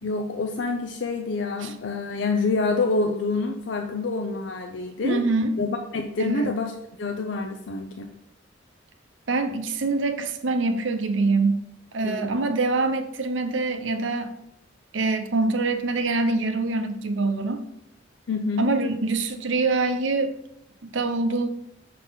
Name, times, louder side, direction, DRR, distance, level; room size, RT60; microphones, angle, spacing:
voice 1, 0.0-5.2 5.6-8.1 12.0-12.5 18.3-18.7, left 3 dB, 70° left, 4 dB, 0.5 m, -27 dB
voice 2, 5.0-5.6 6.2-6.5 9.3-11.6 11.9-14.3 14.9-17.7 18.6-20.3 20.8-21.5, right 3 dB, 80° right, 7 dB, 0.7 m, -24 dB
6.5 x 3.9 x 3.9 m, 0.77 s
head